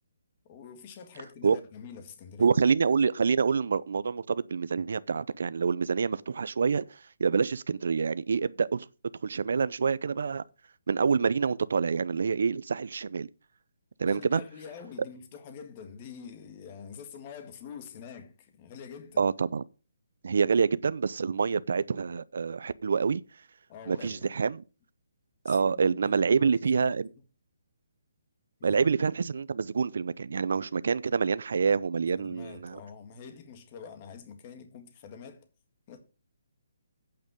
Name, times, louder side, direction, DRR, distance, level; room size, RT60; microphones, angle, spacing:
voice 1, 0.5-2.5 14.0-19.3 23.7-24.3 25.5-27.1 28.6-28.8 32.2-35.5 35.9-36.0, left 6 dB, 30° left, 1.7 m, -46 dB
voice 2, 2.4-6.8 7.2-8.9 9.2-10.4 10.9-13.3 14.0-14.4 19.2-19.6 20.2-23.2 23.9-24.6 25.4-27.1 28.6-32.8, right 5 dB, 65° right, 0.5 m, -26 dB
8.7 x 5.3 x 7.6 m
hypercardioid pair, 160°, 0 cm